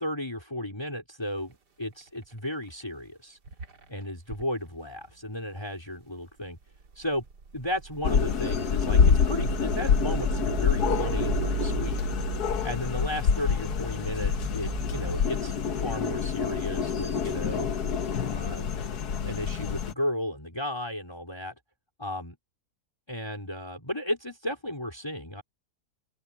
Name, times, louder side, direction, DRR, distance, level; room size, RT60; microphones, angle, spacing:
voice 1, 0.0-3.4 3.9-6.6 6.9-7.2 7.5-12.0 12.6-15.6 15.8-17.7 18.2-18.7 19.2-21.6 22.0-22.4 23.1-25.4, left 1 dB, 15° left, 5.0 m, -34 dB
sound 1, 1.3-1.5 1.8-2.5 2.8-2.9 3.4-4.4 6.6-15.2, right 4 dB, 85° right, 3.1 m, -35 dB
sound 2, 8.0-19.9, left 6 dB, 70° left, 1.6 m, -27 dB
open air
omnidirectional pair, 1.8 m